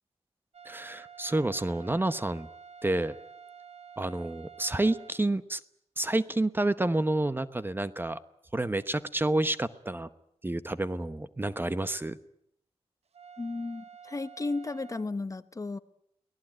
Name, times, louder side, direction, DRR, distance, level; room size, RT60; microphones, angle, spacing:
sound 1, 0.5-5.2 13.1-15.1, right 6 dB, 75° right, 1.2 m, -49 dB
voice 1, 0.6-2.5 2.8-3.2 4.0-5.6 6.0-8.2 8.5-10.1 10.4-12.2, right 2 dB, 20° right, 13 dB, 0.9 m, -29 dB
voice 2, 13.4-15.8, left 3 dB, 30° left, 13 dB, 1.0 m, -34 dB
24.0 x 18.0 x 8.9 m, 0.73 s
wide cardioid pair, 85°, 11 cm